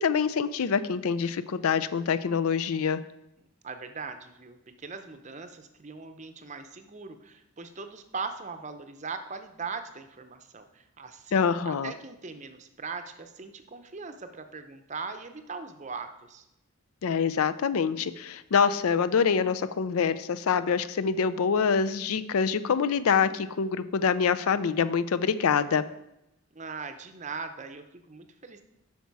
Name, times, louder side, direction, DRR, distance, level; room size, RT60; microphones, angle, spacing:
voice 1, 0.0-3.0 11.3-11.9 17.0-25.8, left 6 dB, 80° left, 14 dB, 0.4 m, -25 dB
voice 2, 3.6-16.4 26.5-28.6, right 4 dB, 30° right, 8 dB, 0.6 m, -40 dB
8.4 x 5.9 x 4.7 m, 0.86 s
head